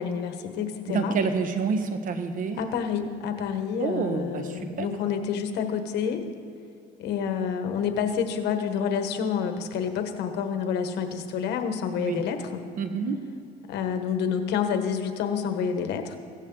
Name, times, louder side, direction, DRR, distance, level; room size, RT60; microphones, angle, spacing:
voice 1, 0.0-1.1 2.6-6.3 7.0-12.6 13.7-16.2, left 7 dB, 80° left, 7 dB, 1.3 m, -28 dB
voice 2, 0.9-2.6 3.8-4.9 11.9-12.2 12.8-13.3, right 5 dB, 55° right, 8 dB, 1.2 m, -28 dB
16.5 x 14.0 x 3.9 m, 2.6 s
cardioid pair, 110°, 17 cm